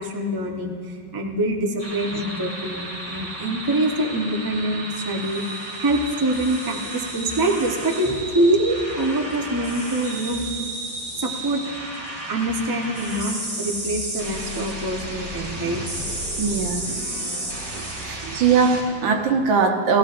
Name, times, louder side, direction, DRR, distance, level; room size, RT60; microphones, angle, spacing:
voice 1, 0.0-10.5 11.2-11.6 12.3-15.8 17.2-17.4 18.0-18.4, right 1 dB, 25° right, 0 dB, 0.4 m, -25 dB
sound 1, 1.8-18.8, right 1 dB, 45° right, 3.1 m, -32 dB
voice 2, 16.4-16.8 17.7-20.0, right 5 dB, 80° right, 4 dB, 1.7 m, -21 dB
17.5 x 15.5 x 2.5 m, 2.3 s
omnidirectional pair, 2.1 m